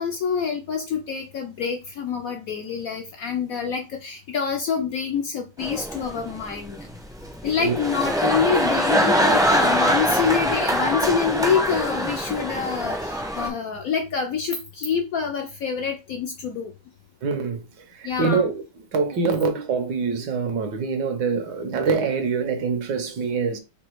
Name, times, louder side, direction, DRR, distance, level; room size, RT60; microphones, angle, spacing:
voice 1, 0.0-6.8 7.4-16.7 18.0-18.4, left 6 dB, 65° left, 0.9 m, -26 dB
sound 1, 5.6-13.5, equal, 5° right, 0.6 m, -23 dB
voice 2, 17.2-17.6 17.9-18.6 18.9-23.6, right 5 dB, 70° right, 1.5 m, -24 dB
4.2 x 2.7 x 4.5 m
omnidirectional pair, 2.0 m